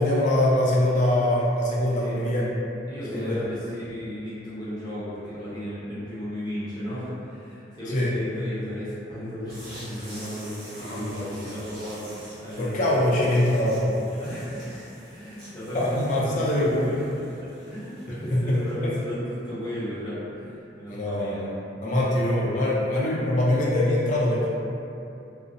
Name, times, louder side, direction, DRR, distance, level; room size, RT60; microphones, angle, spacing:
voice 1, 0.0-2.5 3.1-3.4 7.9-8.1 10.8-11.5 12.6-13.9 15.7-17.0 18.1-18.9 20.9-21.5 21.8-24.5, left 1 dB, 45° left, -6 dB, 0.4 m, -23 dB
voice 2, 2.9-13.1 14.2-17.4 17.7-21.4 21.7-22.2 22.5-22.7, equal, 25° left, -13 dB, 0.8 m, -35 dB
sound 1, 9.5-19.0, right 1 dB, 55° right, 1.0 m, -46 dB
2.6 x 2.0 x 2.4 m, 2.8 s
head